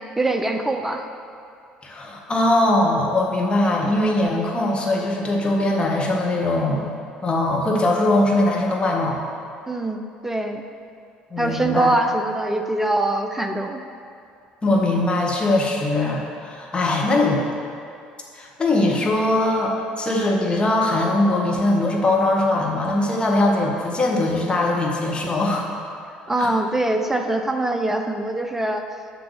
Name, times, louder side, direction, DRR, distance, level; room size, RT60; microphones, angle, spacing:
voice 1, 0.2-1.0 9.7-10.6 11.4-13.8 26.3-28.8, right 1 dB, 5° right, 5 dB, 0.8 m, -23 dB
voice 2, 1.8-6.9 7.2-9.2 11.3-11.9 14.6-17.4 18.3-25.7 26.4-26.5, left 2 dB, 25° left, -1 dB, 1.7 m, -21 dB
7.9 x 5.8 x 6.5 m, 2.4 s
figure-of-eight pair, 55°, 4 cm